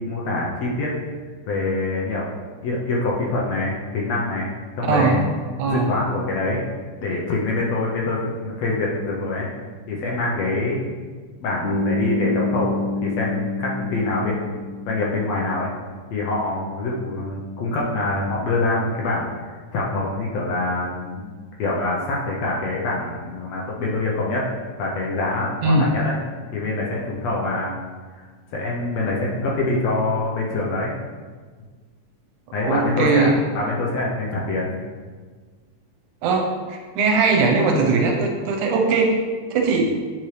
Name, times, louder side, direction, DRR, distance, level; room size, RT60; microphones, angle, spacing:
voice 1, 0.1-0.9 1.5-2.3 2.6-5.2 5.7-6.6 7.0-9.5 9.9-10.8 11.4-15.7 16.1-21.3 21.6-24.4 24.8-26.1 26.5-27.8 28.5-31.0 32.5-34.8, left 2 dB, 70° left, -3 dB, 1.8 m, -25 dB
voice 2, 4.8-5.2 5.6-5.9 25.6-25.9 32.6-33.3 36.2-39.2 39.5-39.9, right 3 dB, 80° right, 1 dB, 2.2 m, -20 dB
Bass guitar, 11.6-15.7, left 2 dB, 25° left, 0.7 m, -27 dB
8.5 x 4.6 x 3.2 m, 1.5 s
omnidirectional pair, 3.5 m